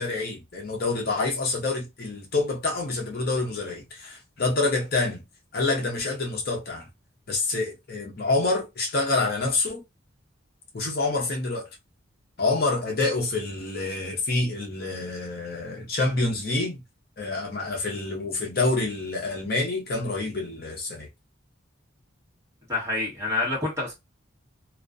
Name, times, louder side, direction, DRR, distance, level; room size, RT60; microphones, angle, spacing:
voice 1, 0.0-5.2 5.5-6.9 7.3-9.8 10.7-11.7 12.4-16.8 17.2-21.1, left 3 dB, 50° left, 0.7 m, -27 dB
voice 2, 22.7-23.9, left 2 dB, 15° right, 1.1 m, -27 dB
2.4 x 2.1 x 2.5 m
head